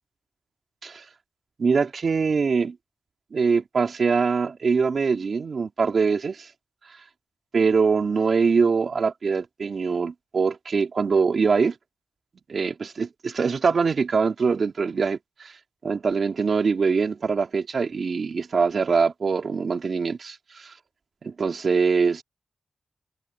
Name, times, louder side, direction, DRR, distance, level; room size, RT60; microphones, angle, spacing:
voice 1, 1.6-2.8 3.3-6.5 7.5-11.7 12.5-15.5 15.8-20.7 21.2-22.2, right 5 dB, 70° right, 2.7 m, -23 dB
cardioid pair, 50°, 0 cm